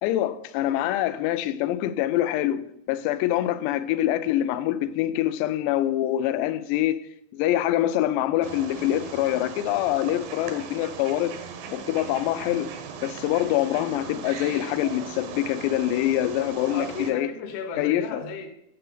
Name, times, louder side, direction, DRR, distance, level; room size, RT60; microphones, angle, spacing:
voice 1, 0.0-7.0 7.3-11.4 11.7-12.7 13.0-17.3 17.8-18.2, left 13 dB, 90° left, 2.8 m, -25 dB
Wild animals, 8.4-17.1, right 6 dB, 80° right, 3.0 m, -39 dB
voice 2, 16.6-18.5, left 5 dB, 70° left, 1.9 m, -34 dB
9.8 x 6.8 x 3.9 m
omnidirectional pair, 4.9 m